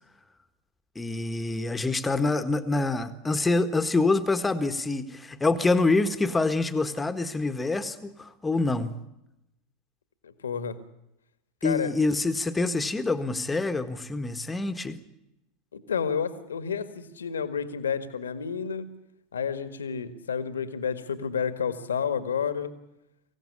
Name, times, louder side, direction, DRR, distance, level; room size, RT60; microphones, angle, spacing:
voice 1, 0.9-8.9 11.6-15.0, left 3 dB, 15° left, 10 dB, 1.6 m, -26 dB
voice 2, 10.2-10.8 11.6-11.9 15.7-18.9 19.3-22.7, left 7 dB, 80° left, 11 dB, 1.9 m, -30 dB
25.0 x 16.5 x 9.9 m, 0.90 s
hypercardioid pair, 85°, 0 cm